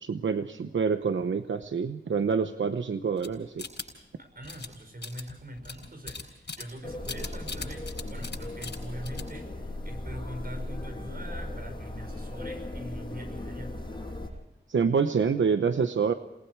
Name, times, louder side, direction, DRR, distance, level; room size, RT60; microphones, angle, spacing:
voice 1, 0.0-3.6 14.7-16.1, right 6 dB, 80° right, 9 dB, 0.9 m, -27 dB
sound 1, 3.2-4.2 4.4-4.7 5.0-6.8 7.0-8.4 8.6-8.8 9.0-9.4, left 4 dB, 60° left, 7.3 m, -38 dB
voice 2, 4.2-13.8, equal, 50° right, 6 dB, 5.6 m, -43 dB
sound 2, 6.8-14.3, left 1 dB, 25° left, 7.6 m, -37 dB
28.5 x 20.5 x 4.7 m, 0.92 s
wide cardioid pair, 80°, 19 cm